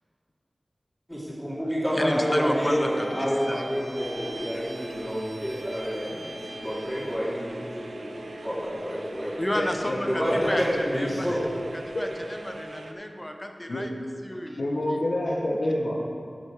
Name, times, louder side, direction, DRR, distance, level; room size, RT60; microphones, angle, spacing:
voice 1, 1.1-9.3 10.1-11.4, equal, 5° left, -8 dB, 2.7 m, -28 dB
voice 2, 1.9-3.6 4.5-4.7 9.4-11.4 11.7-13.9 14.2-14.6 15.5-15.6, equal, 20° left, 4 dB, 0.8 m, -32 dB
Bowed string instrument, 2.6-7.3, right 1 dB, 45° right, 1.1 m, -44 dB
sound 1, 4.0-12.9, right 2 dB, 85° right, 0.6 m, -42 dB
voice 3, 9.5-10.0 11.9-12.0 13.7-13.9 14.6-16.0, left 1 dB, 75° left, -4 dB, 1.0 m, -27 dB
9.6 x 6.3 x 6.0 m, 2.2 s
wide cardioid pair, 45°, 0 cm